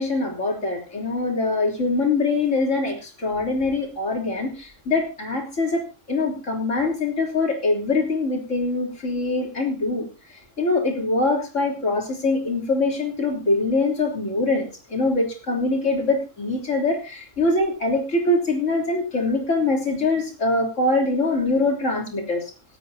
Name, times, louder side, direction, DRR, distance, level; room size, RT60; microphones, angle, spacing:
voice 1, 0.0-10.1 10.6-22.4, left 2 dB, 70° left, 0 dB, 3.8 m, -23 dB
27.0 x 9.1 x 2.8 m, 0.29 s
omnidirectional pair, 1.3 m